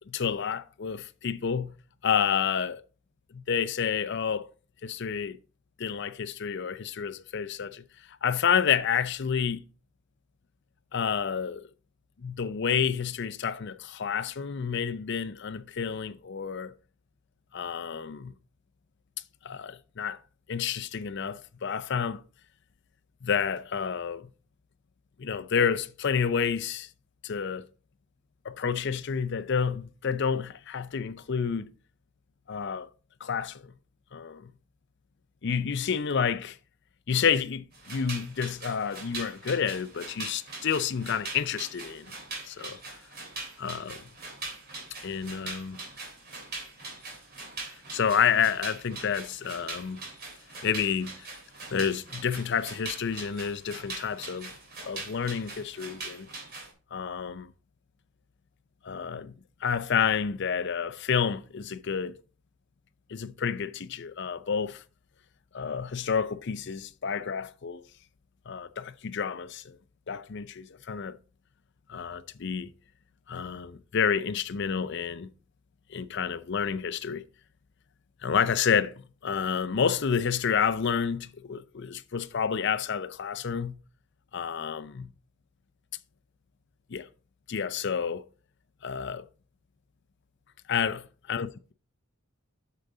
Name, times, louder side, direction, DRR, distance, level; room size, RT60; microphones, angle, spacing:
voice 1, 0.1-1.8 2.0-2.8 3.3-4.5 4.8-5.4 5.8-9.6 10.9-11.6 12.2-16.7 17.5-18.3 19.4-20.2 20.5-22.2 23.2-24.3 25.2-26.9 27.2-27.6 28.4-31.7 32.5-32.9 33.2-33.7 34.1-34.5 35.4-36.6 37.1-42.1 42.4-42.8 43.6-44.0 45.0-45.8 47.9-50.0 50.6-51.3 51.7-54.5 54.8-56.3 56.9-57.5 58.8-62.2 63.1-64.8 65.5-67.8 68.5-69.8 70.1-71.2 71.9-72.7 73.3-75.3 75.9-77.2 78.2-83.8 84.3-85.1 86.9-87.1 87.5-88.2 88.8-89.3 90.7-91.5, left 7 dB, 55° left, 0.5 m, -29 dB
sound 1, 37.7-56.7, right 3 dB, 45° right, 3.3 m, -42 dB
8.3 x 6.7 x 3.8 m
head